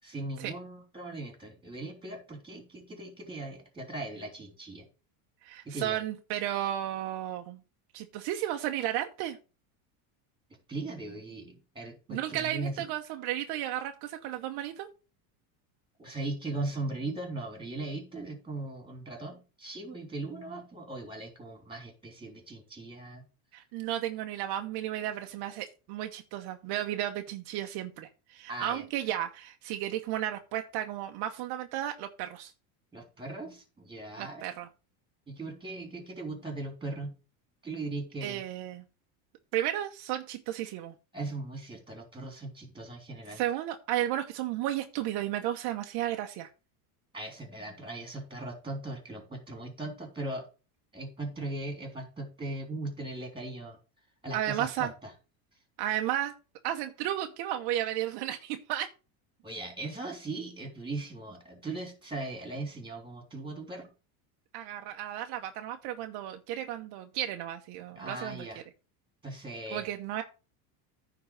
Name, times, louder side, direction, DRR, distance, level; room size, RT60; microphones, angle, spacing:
voice 1, 0.0-4.9 5.6-6.0 10.7-12.9 16.0-23.2 28.5-28.8 32.9-34.5 35.3-37.1 37.6-38.4 41.1-43.4 47.1-50.4 50.9-53.8 54.2-55.1 59.4-63.9 67.9-68.6 69.2-69.9, right 2 dB, 10° right, 4 dB, 3.2 m, -39 dB
voice 2, 5.4-7.6 7.9-9.4 12.1-14.9 23.5-32.5 34.2-34.7 38.2-38.8 39.5-40.9 43.3-46.5 54.3-54.9 55.8-56.3 56.6-58.9 64.5-68.5 69.7-70.2, right 12 dB, 55° right, 5 dB, 1.0 m, -33 dB
9.6 x 4.0 x 6.4 m, 0.32 s
supercardioid pair, 125°, 46 cm